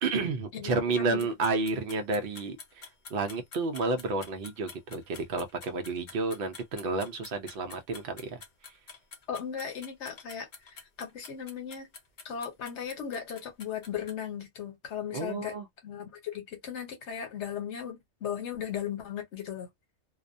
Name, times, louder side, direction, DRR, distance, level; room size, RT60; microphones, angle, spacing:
voice 1, 0.0-8.4 15.1-15.7, right 3 dB, 60° right, 0.7 m, -31 dB
voice 2, 0.5-1.3 9.3-10.5 11.0-11.9 12.2-15.5 15.8-19.7, left 8 dB, 80° left, 1.1 m, -37 dB
sound 1, 1.2-14.1, left 5 dB, 50° left, 0.7 m, -48 dB
2.3 x 2.1 x 2.5 m
omnidirectional pair, 1.2 m